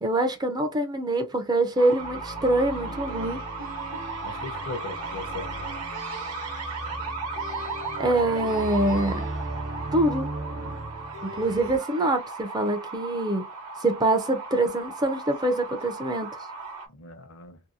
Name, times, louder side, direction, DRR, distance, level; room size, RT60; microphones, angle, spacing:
voice 1, 0.0-3.4 8.0-9.3 9.9-10.3 11.2-13.5 13.8-16.4, right 2 dB, 20° right, 0.4 m, -25 dB
sound 1, 1.8-16.9, right 3 dB, 90° right, 1.0 m, -36 dB
sound 2, 2.0-11.8, right 2 dB, 55° right, 0.8 m, -37 dB
voice 2, 4.2-5.6 16.9-17.6, left 3 dB, 65° left, 0.7 m, -38 dB
2.7 x 2.6 x 2.6 m
head